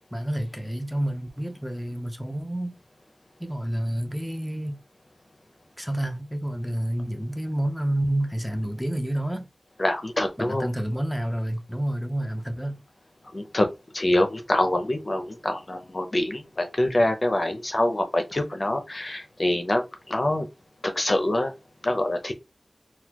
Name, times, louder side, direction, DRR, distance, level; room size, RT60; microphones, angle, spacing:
voice 1, 0.1-2.7 3.4-4.8 5.8-9.5 10.4-12.8, right 1 dB, 5° left, 0.7 m, -29 dB
voice 2, 9.8-10.7 13.3-13.7 13.9-20.5 20.8-21.5 21.8-22.3, left 1 dB, 45° left, 0.7 m, -25 dB
4.0 x 2.3 x 2.9 m
wide cardioid pair, 55°, 0 cm